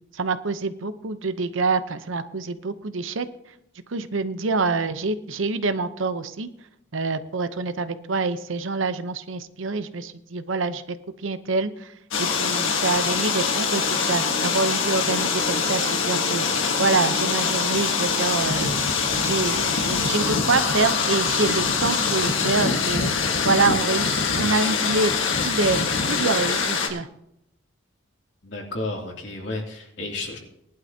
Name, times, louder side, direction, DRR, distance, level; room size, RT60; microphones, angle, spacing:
voice 1, 0.2-3.3 3.9-6.5 6.9-10.8 11.2-11.7 12.2-16.4 16.8-18.7 19.2-23.1 23.4-25.1 25.4-25.8 26.1-27.1, right 3 dB, 75° right, 11 dB, 0.8 m, -26 dB
sound 1, 12.1-26.9, left 5 dB, 80° left, 1.6 m, -24 dB
voice 2, 28.4-30.4, left 2 dB, 65° left, -1 dB, 2.7 m, -32 dB
19.5 x 11.5 x 2.8 m, 0.78 s
head